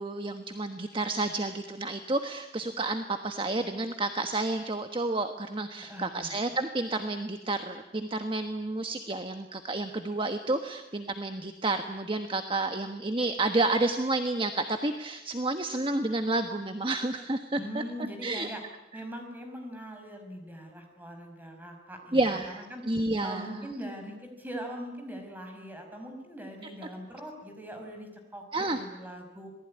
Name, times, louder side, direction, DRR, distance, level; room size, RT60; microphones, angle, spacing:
voice 1, 0.0-17.8 18.2-18.5 18.9-19.0 22.1-23.7 28.5-28.8, right 2 dB, 30° right, 7 dB, 1.3 m, -30 dB
voice 2, 5.9-6.3 17.6-18.6 18.9-22.8 23.2-29.5, equal, 10° right, 4 dB, 5.5 m, -41 dB
26.5 x 19.5 x 9.7 m, 1.0 s
head